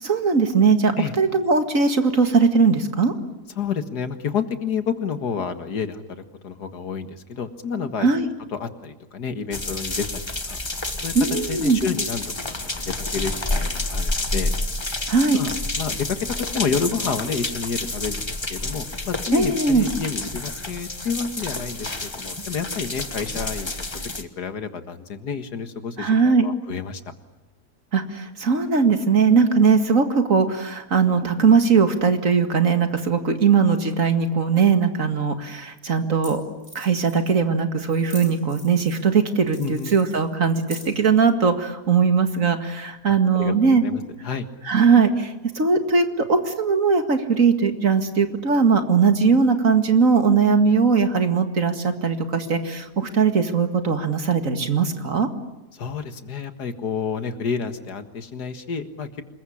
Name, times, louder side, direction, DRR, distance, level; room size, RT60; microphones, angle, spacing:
voice 1, 0.0-3.1 8.0-8.3 11.2-11.8 15.1-15.4 19.3-19.9 26.0-26.5 27.9-36.4 36.8-43.8 44.7-55.3, right 5 dB, 55° right, 7 dB, 2.3 m, -19 dB
voice 2, 3.6-6.0 6.4-8.1 8.5-10.2 10.5-10.6 11.0-11.1 11.5-14.5 14.8-15.0 15.3-23.7 24.2-27.0 39.6-39.9 43.3-44.5 55.7-59.2, left 6 dB, 80° left, 9 dB, 2.2 m, -29 dB
sound 1, 9.5-24.2, left 2 dB, 20° left, 1.3 m, -29 dB
sound 2, 36.0-36.1 36.2-36.3 36.6-37.4 37.9-39.1 39.5-41.1, equal, 35° right, 7.4 m, -42 dB
26.5 x 22.0 x 10.0 m, 1.1 s
omnidirectional pair, 1.7 m